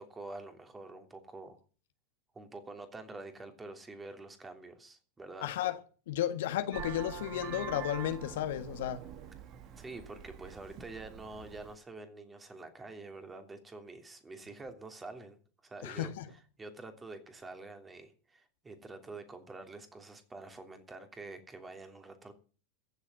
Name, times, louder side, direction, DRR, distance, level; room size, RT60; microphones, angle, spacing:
voice 1, 0.0-1.6 2.3-5.5 9.7-22.3, right 3 dB, 15° right, 3.1 m, -47 dB
voice 2, 5.4-5.8 6.1-9.0 15.8-16.3, left 12 dB, 65° left, 1.5 m, -33 dB
Vehicle horn car horn honking, 6.7-11.8, right 9 dB, 40° right, 1.8 m, -45 dB
15.0 x 7.4 x 8.2 m
figure-of-eight pair, 90°, 0 cm